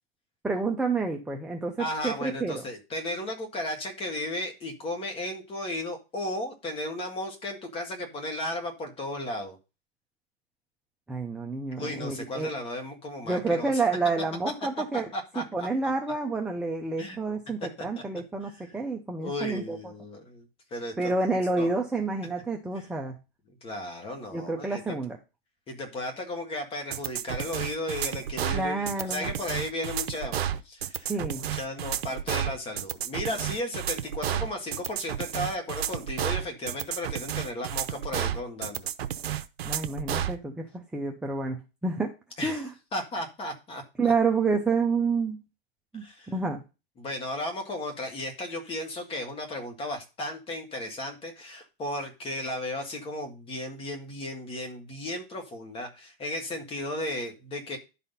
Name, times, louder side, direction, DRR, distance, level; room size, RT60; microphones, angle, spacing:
voice 1, 0.4-2.6 11.1-12.5 13.3-15.1 15.4-19.8 21.0-23.1 24.3-25.2 28.5-29.3 31.1-31.5 39.6-42.1 42.4-42.7 44.0-45.4 45.9-46.6, right 3 dB, 5° right, 2 dB, 0.5 m, -29 dB
voice 2, 1.8-9.6 11.8-13.8 14.9-15.9 17.0-17.2 17.6-17.7 18.0-18.1 18.5-18.6 19.2-21.1 21.6-21.8 23.6-25.0 25.7-30.4 30.6-31.1 31.4-38.9 42.4-42.6 42.9-43.8 46.0-46.3 47.0-57.8, left 1 dB, 20° left, 5 dB, 1.8 m, -35 dB
sound 1, 26.9-40.4, right 10 dB, 75° right, 0.8 m, -31 dB
11.0 x 4.2 x 5.5 m, 0.29 s
hypercardioid pair, 140°, 31 cm